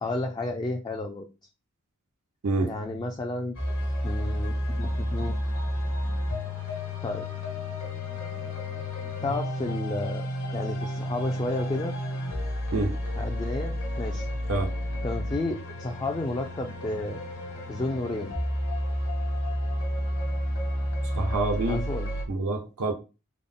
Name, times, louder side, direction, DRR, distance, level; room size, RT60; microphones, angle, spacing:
voice 1, 0.0-1.3 2.6-3.6 4.0-5.4 7.0-7.3 9.2-12.0 13.2-14.3 15.0-17.2 17.7-18.3 21.6-22.1, left 2 dB, 20° left, 0.3 m, -32 dB
voice 2, 2.4-2.8 12.7-13.0 14.5-14.7 21.2-21.8 22.3-22.9, right 2 dB, 80° right, 0.6 m, -27 dB
sound 1, 3.5-22.2, equal, 65° left, 1.2 m, -31 dB
3.6 x 2.0 x 3.5 m
head